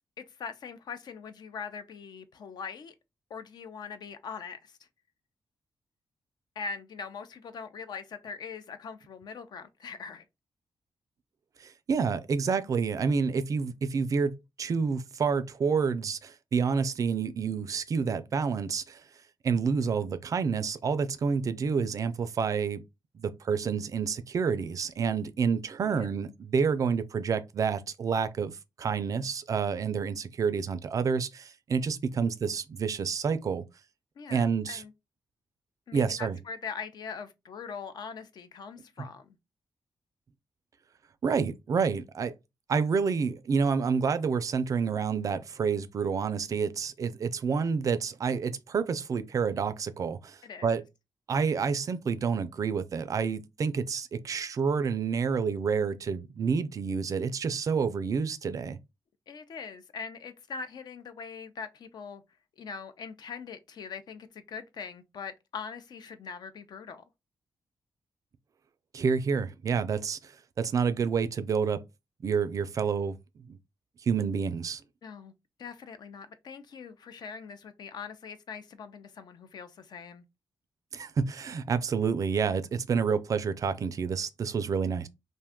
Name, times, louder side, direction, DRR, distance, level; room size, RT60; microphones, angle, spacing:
voice 1, 0.2-2.9 3.3-4.8 6.6-10.2 25.8-26.1 34.2-34.9 35.9-39.4 50.4-50.7 59.3-62.2 62.6-67.0 75.0-75.3 75.6-80.2, left 5 dB, 65° left, 0.5 m, -42 dB
voice 2, 11.6-19.0 19.4-22.8 23.2-33.6 34.3-34.8 35.9-36.4 39.0-39.1 41.2-42.3 42.7-50.8 51.3-58.8 68.9-71.8 72.2-73.2 73.5-73.6 74.0-74.8 80.9-85.1, right 5 dB, 45° right, 0.3 m, -29 dB
2.5 x 2.2 x 3.5 m
wide cardioid pair, 120°, 8 cm